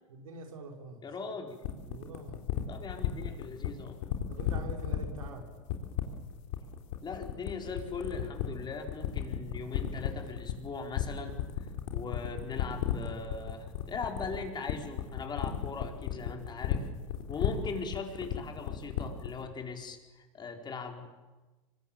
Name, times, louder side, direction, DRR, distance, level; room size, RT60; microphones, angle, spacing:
voice 1, 0.1-1.0 1.9-2.4 4.3-5.5, right 3 dB, 85° right, 3 dB, 4.7 m, -45 dB
voice 2, 1.0-1.6 2.7-4.0 7.0-11.4 11.9-16.9 17.3-21.1, left 4 dB, 25° left, 3 dB, 4.7 m, -40 dB
sound 1, 1.6-19.4, left 11 dB, 65° left, 3.7 m, -33 dB
25.5 x 22.5 x 8.9 m, 1.2 s
hypercardioid pair, 100°, 17 cm